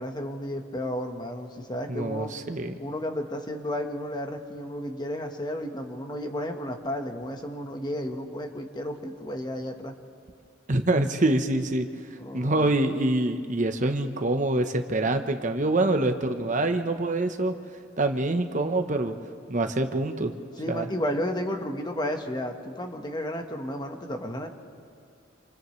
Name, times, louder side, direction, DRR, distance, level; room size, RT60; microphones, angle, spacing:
voice 1, 0.0-2.3 2.8-9.9 12.2-12.8 20.6-24.5, left 1 dB, 25° left, 4 dB, 1.4 m, -32 dB
voice 2, 1.9-2.7 10.7-11.9 12.3-17.5 18.0-19.2 19.5-20.3 20.7-20.9, right 2 dB, 45° right, 6 dB, 1.0 m, -25 dB
28.5 x 27.5 x 3.3 m, 2.4 s
head